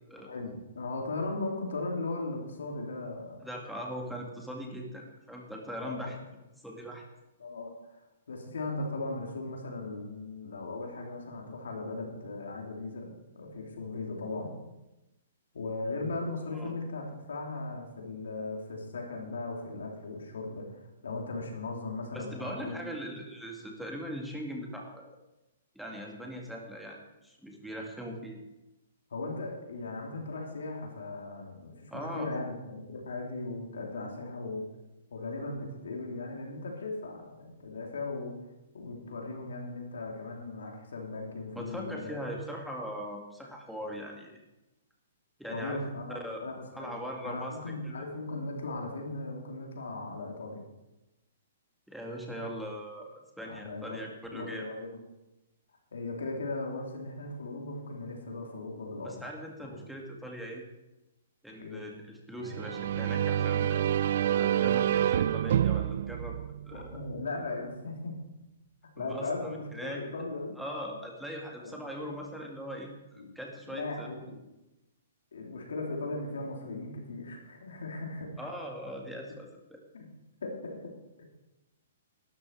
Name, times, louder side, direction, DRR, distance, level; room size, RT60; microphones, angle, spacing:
voice 1, 0.3-3.4 5.8-6.1 7.4-7.7 8.3-14.5 15.5-22.8 29.1-34.6 35.1-38.3 38.7-42.3 45.5-47.0 47.2-50.6 53.5-54.0 54.3-55.0 55.9-59.1 59.6-59.8 61.6-61.8 66.7-68.2 69.0-70.5 71.6-72.2 73.2-73.4 73.6-74.4 75.3-78.4 79.9-80.1 80.4-80.9, left 2 dB, 85° left, 1 dB, 3.2 m, -38 dB
voice 2, 3.4-6.2 6.6-7.0 16.5-16.7 22.1-25.0 25.8-28.4 31.9-32.3 41.6-44.4 45.4-45.8 46.1-46.4 46.7-48.0 51.9-54.7 59.0-60.6 61.4-63.9 64.4-66.4 66.6-67.0 69.0-70.0 70.6-74.1 78.4-79.8, equal, ahead, -1 dB, 2.1 m, -40 dB
sound 1, 62.4-67.2, right 10 dB, 60° right, 0.3 m, -28 dB
12.5 x 10.5 x 4.8 m, 0.97 s
hypercardioid pair, 145°, 0 cm